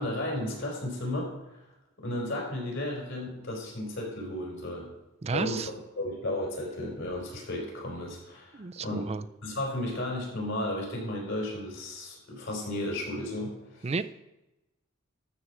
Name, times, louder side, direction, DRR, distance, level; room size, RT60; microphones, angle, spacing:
voice 1, 0.0-1.3 2.0-4.9 5.3-9.1 9.4-13.9, left 1 dB, 65° left, -1 dB, 4.4 m, -34 dB
voice 2, 5.2-5.7 8.5-9.2 13.8-14.0, right 4 dB, 30° right, 14 dB, 0.4 m, -32 dB
12.5 x 4.7 x 7.1 m, 0.96 s
head